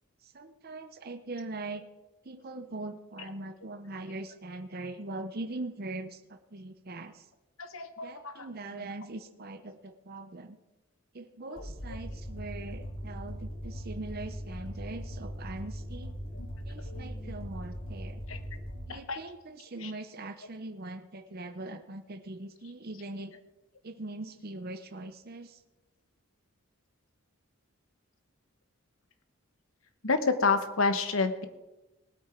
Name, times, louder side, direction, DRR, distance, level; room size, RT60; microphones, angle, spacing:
voice 1, 0.2-1.9 2.2-7.3 8.0-10.6 11.1-16.2 16.7-18.2 18.9-23.3 23.8-25.6, right 2 dB, 45° right, 8 dB, 0.8 m, -41 dB
voice 2, 7.6-8.5 11.5-11.7 16.3-16.5 16.8-17.3 18.3-18.4 18.9-19.2 19.8-19.9 30.0-31.4, left 4 dB, 70° left, 9 dB, 1.1 m, -29 dB
sound 1, 11.6-18.9, equal, 85° left, 5.2 m, -40 dB
19.0 x 8.7 x 4.5 m, 1.0 s
head